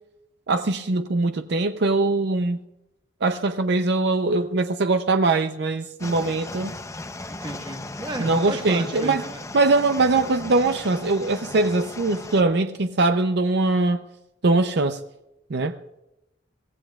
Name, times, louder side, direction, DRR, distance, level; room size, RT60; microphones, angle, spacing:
voice 1, 0.5-2.6 3.2-6.7 8.2-9.2 9.5-14.0 14.4-15.0 15.5-15.8, right 3 dB, 65° right, 0.6 m, -22 dB
sound 1, 6.0-12.4, left 2 dB, 15° left, 0.6 m, -37 dB
voice 2, 7.3-9.5, right 1 dB, 25° right, 1.5 m, -34 dB
23.5 x 15.5 x 2.4 m
head